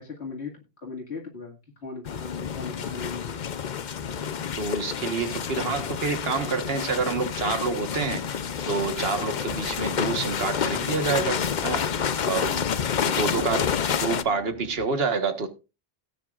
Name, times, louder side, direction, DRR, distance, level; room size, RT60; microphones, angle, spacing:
voice 1, 0.0-3.4 11.9-12.6, left 4 dB, 85° left, 2.5 m, -38 dB
sound 1, 2.0-14.2, left 7 dB, 50° left, 0.7 m, -29 dB
sound 2, 4.0-14.8, right 1 dB, 10° left, 2.6 m, -50 dB
voice 2, 4.6-8.2 8.7-11.8 12.3-12.5 13.1-13.7 13.9-15.5, right 4 dB, 70° right, 1.6 m, -27 dB
18.5 x 8.9 x 2.4 m
omnidirectional pair, 1.1 m